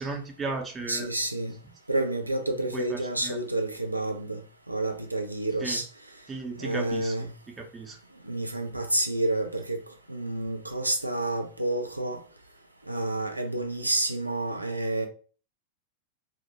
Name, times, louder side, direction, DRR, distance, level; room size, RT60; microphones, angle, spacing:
voice 1, 0.0-1.1 2.7-3.4 5.6-5.8 6.3-7.3 7.6-8.0, right 3 dB, 20° right, 0.5 m, -35 dB
voice 2, 0.9-1.5 1.9-4.4 4.7-5.8 6.6-7.3 8.3-9.8 10.1-12.2 12.9-15.1, right 2 dB, 85° right, 0.3 m, -29 dB
2.1 x 2.1 x 2.8 m
figure-of-eight pair, 90°, 0 cm